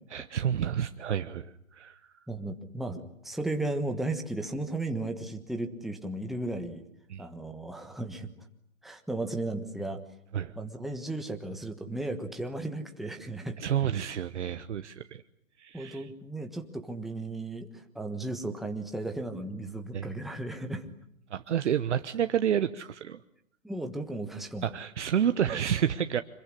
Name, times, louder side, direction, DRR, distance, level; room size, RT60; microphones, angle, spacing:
voice 1, 0.1-2.1 7.1-7.3 10.3-10.5 13.6-15.2 15.6-16.0 19.9-20.1 21.3-23.2 24.6-26.2, right 9 dB, 55° right, 10 dB, 1.2 m, -29 dB
voice 2, 2.3-6.8 7.2-8.3 8.8-10.0 10.5-13.6 15.7-20.9 23.6-24.7, right 2 dB, ahead, 4 dB, 1.3 m, -35 dB
26.5 x 21.5 x 10.0 m, 0.73 s
hypercardioid pair, 145°, 41 cm